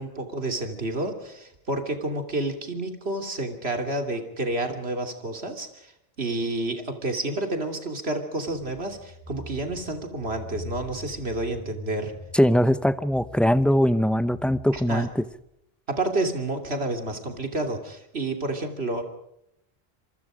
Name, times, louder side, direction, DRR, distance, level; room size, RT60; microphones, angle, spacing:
voice 1, 0.0-5.9 6.2-12.1 14.7-15.1 15.9-19.0, right 2 dB, 85° right, 5 dB, 3.2 m, -30 dB
sound 1, 8.5-15.4, left 2 dB, 15° left, 6.7 m, -44 dB
voice 2, 12.3-15.2, equal, ahead, 14 dB, 0.7 m, -21 dB
26.5 x 24.5 x 5.1 m, 0.79 s
omnidirectional pair, 1.0 m